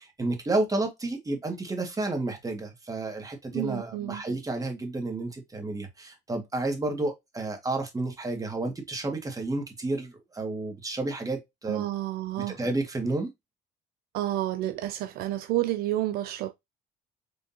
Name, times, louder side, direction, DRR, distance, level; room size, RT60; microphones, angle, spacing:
voice 1, 0.0-11.8 12.4-13.3, right 2 dB, 20° right, 2.2 m, -31 dB
voice 2, 3.5-4.2 11.7-12.6 14.1-16.5, right 14 dB, 75° right, 0.5 m, -30 dB
5.2 x 3.5 x 2.8 m
supercardioid pair, 75°, 16 cm